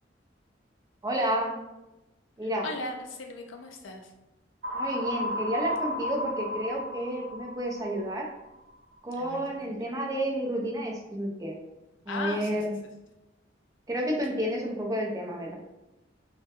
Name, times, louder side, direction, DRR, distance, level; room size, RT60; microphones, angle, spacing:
voice 1, 1.0-1.6 2.4-2.6 4.7-8.3 9.0-11.5 12.1-12.7 13.9-15.5, equal, 20° right, -1 dB, 0.4 m, -30 dB
voice 2, 2.4-4.1 9.1-9.7 12.1-12.6, left 2 dB, 80° left, 3 dB, 0.4 m, -38 dB
sound 1, 4.6-8.5, left 1 dB, 75° right, 0.6 m, -33 dB
2.2 x 2.1 x 2.8 m, 0.95 s
head